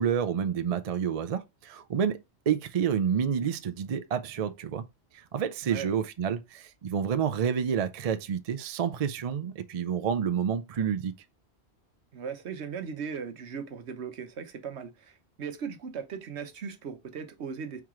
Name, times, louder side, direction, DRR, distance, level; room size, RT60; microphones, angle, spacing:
voice 1, 0.0-2.2 2.5-4.8 5.1-11.1, right 7 dB, 50° right, 0.4 m, -29 dB
voice 2, 12.1-17.8, right 6 dB, 75° right, 1.1 m, -38 dB
4.7 x 3.1 x 3.6 m
omnidirectional pair, 1.2 m